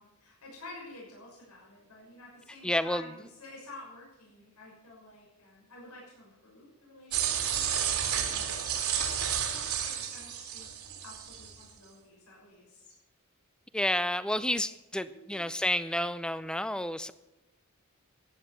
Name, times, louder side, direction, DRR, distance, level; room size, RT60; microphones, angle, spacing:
voice 1, 0.0-10.7 11.0-12.9 15.1-15.5, left 2 dB, 90° left, -3 dB, 6.1 m, -51 dB
voice 2, 2.6-3.1 13.7-17.1, left 1 dB, 5° left, 14 dB, 0.5 m, -30 dB
sound 1, 7.1-11.5, right 8 dB, 85° right, 2.5 m, -31 dB
15.0 x 10.0 x 6.8 m, 0.98 s
head